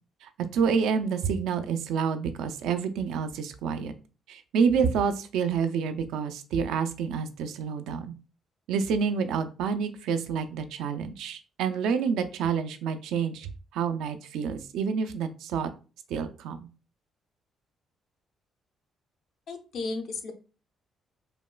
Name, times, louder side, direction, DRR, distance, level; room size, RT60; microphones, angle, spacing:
voice 1, 0.2-3.9 4.3-8.1 8.7-13.5 13.7-15.7 16.1-16.7, right 6 dB, 90° right, 9 dB, 0.4 m, -28 dB
voice 2, 19.5-20.3, left 3 dB, 70° left, 4 dB, 0.7 m, -34 dB
5.1 x 2.2 x 2.3 m, 0.34 s
cardioid pair, 90°, 0 cm